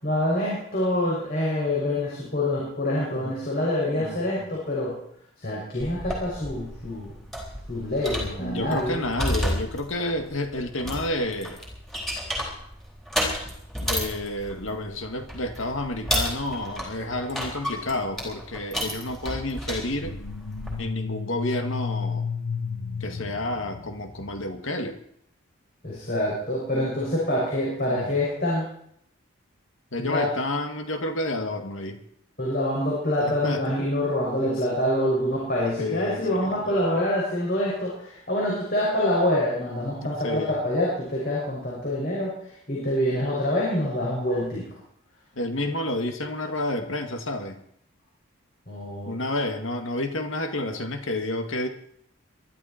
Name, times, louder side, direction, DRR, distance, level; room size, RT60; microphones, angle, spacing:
voice 1, 0.0-5.0 5.4-7.2 7.7-9.0 25.8-28.7 30.1-30.3 32.4-44.7 45.6-45.7 48.7-49.1, left 1 dB, 45° left, -6 dB, 6.1 m, -26 dB
sound 1, 5.8-20.8, equal, ahead, 3.9 m, -32 dB
voice 2, 8.4-11.6 13.8-20.2 20.8-22.3 23.0-25.0 27.9-28.1 29.9-32.0 33.2-33.6 34.4-34.5 35.8-36.8 40.0-40.6 45.3-47.6 49.1-51.7, left 1 dB, 60° left, 6 dB, 2.0 m, -30 dB
sound 2, 19.8-24.5, left 6 dB, 90° left, 0.9 m, -33 dB
23.0 x 12.5 x 4.5 m, 0.69 s
head